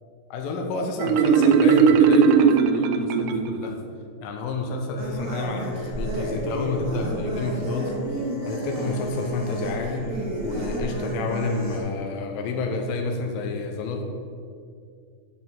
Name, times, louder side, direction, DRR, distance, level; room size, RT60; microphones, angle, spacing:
voice 1, 0.3-3.8 4.2-7.9 8.5-10.0 10.4-14.0, left 3 dB, 90° left, 2 dB, 2.5 m, -29 dB
Marimba xylophone, 1.0-3.8, right 6 dB, 80° right, 1.9 m, -18 dB
sound 1, 5.0-11.8, right 1 dB, 35° right, 1.7 m, -31 dB
8.7 x 4.2 x 7.2 m, 2.3 s
omnidirectional pair, 4.0 m